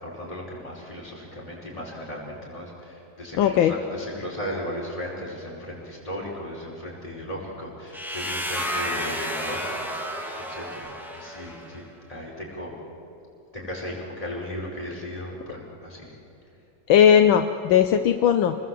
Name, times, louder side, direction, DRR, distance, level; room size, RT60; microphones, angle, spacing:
voice 1, 0.0-11.8 12.1-12.7 13.5-16.1, equal, 15° left, -4 dB, 5.4 m, -36 dB
voice 2, 3.3-3.7 16.9-18.6, left 9 dB, 75° left, 7 dB, 1.5 m, -18 dB
sound 1, 7.9-11.8, equal, ahead, 1.9 m, -31 dB
28.5 x 20.5 x 7.7 m, 2.7 s
omnidirectional pair, 2.2 m